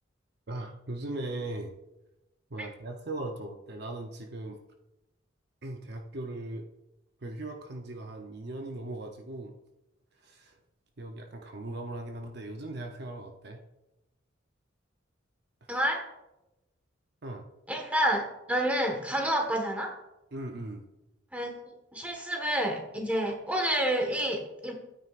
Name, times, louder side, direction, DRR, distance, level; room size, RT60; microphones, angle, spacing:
voice 1, 0.5-1.7 2.5-4.6 5.6-6.6 7.2-9.5 10.2-10.6 11.0-13.6 17.2-17.5 20.3-20.8, right 2 dB, 55° right, 4 dB, 0.8 m, -38 dB
voice 2, 15.7-16.0 17.7-19.9 21.3-21.5 21.9-24.7, right 1 dB, 5° right, 1 dB, 1.5 m, -29 dB
12.5 x 9.2 x 2.5 m, 0.94 s
head